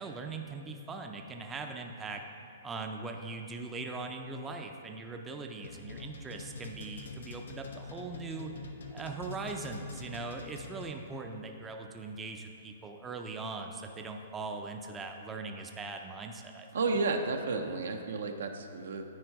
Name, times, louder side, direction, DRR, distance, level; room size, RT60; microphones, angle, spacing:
voice 1, 0.0-2.2 2.6-8.5 8.9-16.7, right 3 dB, 15° right, 3 dB, 0.5 m, -40 dB
sound 1, 5.6-11.2, left 3 dB, 90° left, 0.8 m, -45 dB
voice 2, 16.7-19.0, right 3 dB, 75° right, 5 dB, 0.6 m, -32 dB
9.6 x 4.4 x 4.7 m, 2.6 s
hypercardioid pair, 140°, 0 cm